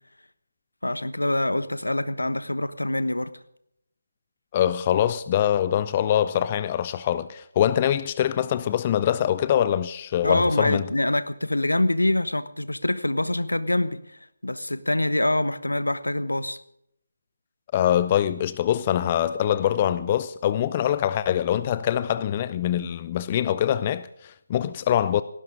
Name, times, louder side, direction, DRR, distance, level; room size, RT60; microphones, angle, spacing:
voice 1, 0.8-3.3 10.2-16.6, left 1 dB, 80° left, 1.2 m, -25 dB
voice 2, 4.5-10.9 17.7-25.2, left 10 dB, 25° left, 0.5 m, -24 dB
18.0 x 16.5 x 3.7 m
figure-of-eight pair, 155°, 0 cm